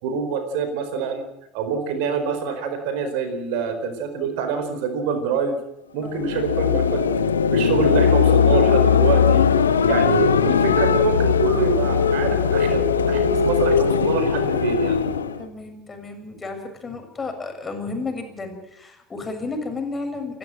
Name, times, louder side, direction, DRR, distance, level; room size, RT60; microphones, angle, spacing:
voice 1, 0.0-1.2 1.5-5.6 5.9-9.4 9.9-15.0, right 6 dB, 65° right, 8 dB, 4.4 m, -26 dB
voice 2, 6.0-6.3 15.4-20.4, left 3 dB, 25° left, 5 dB, 6.8 m, -32 dB
sound 1, 6.1-15.4, left 6 dB, 85° left, 1.4 m, -19 dB
29.0 x 12.5 x 7.7 m, 0.88 s
figure-of-eight pair, 70°, 0 cm